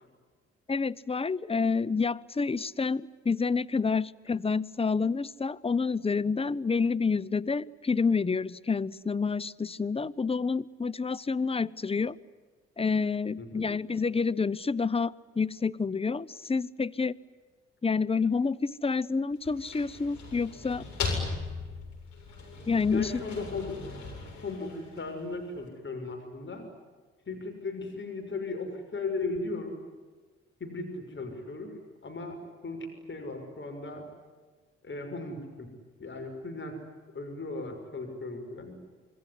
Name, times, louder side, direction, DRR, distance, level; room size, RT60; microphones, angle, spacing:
voice 1, 0.7-12.2 12.8-17.2 17.8-20.8 22.7-23.1, left 4 dB, 15° left, 16 dB, 0.9 m, -28 dB
voice 2, 13.4-13.7 22.9-23.8 24.4-26.7 27.3-29.7 30.6-32.4 32.6-34.1 34.8-35.7 36.0-36.8 37.1-38.8, left 3 dB, 35° left, 4 dB, 6.3 m, -37 dB
sound 1, 19.3-25.4, left 4 dB, 60° left, 7.7 m, -38 dB
27.0 x 22.5 x 9.8 m, 1.4 s
hypercardioid pair, 45°, 33 cm